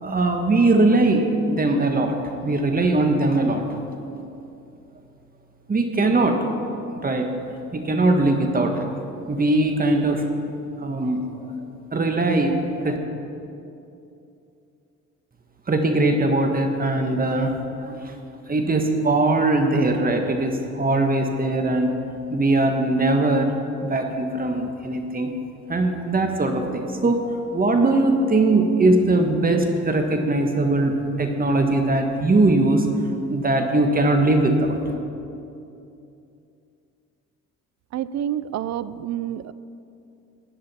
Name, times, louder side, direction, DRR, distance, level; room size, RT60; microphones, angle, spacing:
voice 1, 0.0-2.2 2.4-3.6 5.7-6.4 7.0-7.3 7.7-8.9 9.3-10.2 10.8-11.2 11.9-13.0 15.7-18.0 18.5-21.9 22.3-23.5 23.8-25.3 25.7-27.2 27.5-32.8 33.3-34.8, right 2 dB, 30° right, 4 dB, 1.5 m, -20 dB
voice 2, 37.9-39.5, right 11 dB, 65° right, 16 dB, 0.5 m, -28 dB
16.0 x 10.0 x 4.4 m, 2.7 s
cardioid pair, 90°, 30 cm